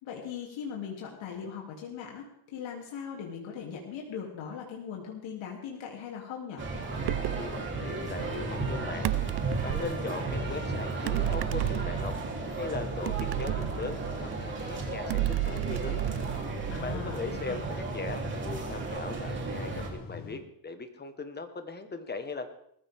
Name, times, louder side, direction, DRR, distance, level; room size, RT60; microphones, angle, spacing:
voice 1, 0.0-6.6 16.7-17.6, left 7 dB, 75° left, -1 dB, 3.2 m, -39 dB
sound 1, 6.6-19.9, right 3 dB, 25° right, 3.7 m, -34 dB
sound 2, 7.0-7.5 9.0-10.0 11.1-12.3 13.1-14.4 15.1-17.0, right 18 dB, 55° right, 0.5 m, -32 dB
voice 2, 7.4-12.1 12.6-16.0 16.8-22.5, left 3 dB, 20° left, 8 dB, 1.6 m, -39 dB
sound 3, 8.5-20.4, left 5 dB, 45° left, 2.1 m, -47 dB
20.0 x 15.0 x 3.7 m, 0.70 s
cardioid pair, 140°, 46 cm